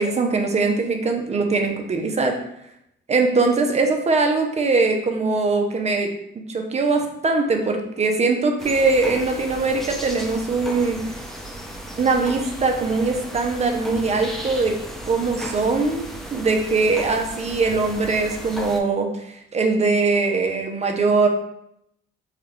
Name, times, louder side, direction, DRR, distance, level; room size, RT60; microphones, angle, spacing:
voice 1, 0.0-2.4 3.1-6.1 6.3-11.0 12.0-14.7 15.1-16.0 16.3-19.3 19.5-21.3, right 3 dB, 35° right, 3 dB, 0.7 m, -21 dB
sound 1, 8.6-18.8, equal, ahead, 0.6 m, -35 dB
4.8 x 2.3 x 3.1 m, 0.78 s
cardioid pair, 90°, 20 cm